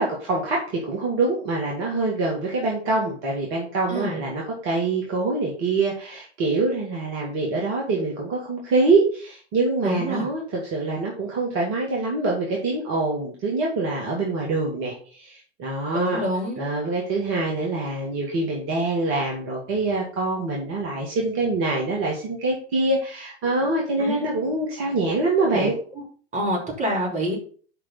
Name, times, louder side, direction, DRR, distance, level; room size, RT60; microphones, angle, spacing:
voice 1, 0.0-16.2 16.6-25.8, right 3 dB, 40° right, -2 dB, 2.1 m, -25 dB
voice 2, 3.9-4.2 9.8-10.2 15.9-16.6 24.0-24.3 25.5-25.7 26.3-27.4, equal, 20° right, -1 dB, 3.2 m, -26 dB
6.8 x 5.4 x 5.6 m, 0.43 s
figure-of-eight pair, 90°, 33 cm